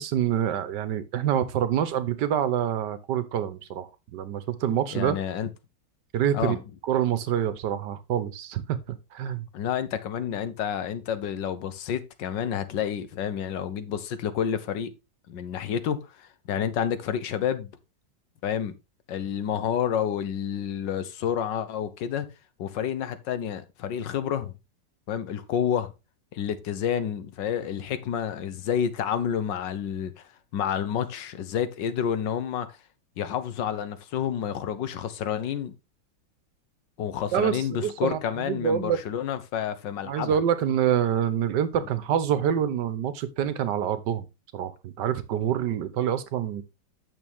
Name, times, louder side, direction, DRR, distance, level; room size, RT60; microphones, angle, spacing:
voice 1, 0.0-5.2 6.1-6.6 6.8-9.5 37.3-39.0 40.0-44.3 44.5-46.6, right 9 dB, 75° right, 1.5 m, -26 dB
voice 2, 4.9-5.5 6.3-6.6 9.5-14.9 15.3-17.7 18.4-18.7 19.1-22.3 22.6-24.5 25.1-25.9 26.3-30.2 30.5-32.8 33.2-35.7 37.0-40.4, left 8 dB, 85° left, 1.6 m, -29 dB
8.7 x 6.5 x 3.5 m
omnidirectional pair, 1.9 m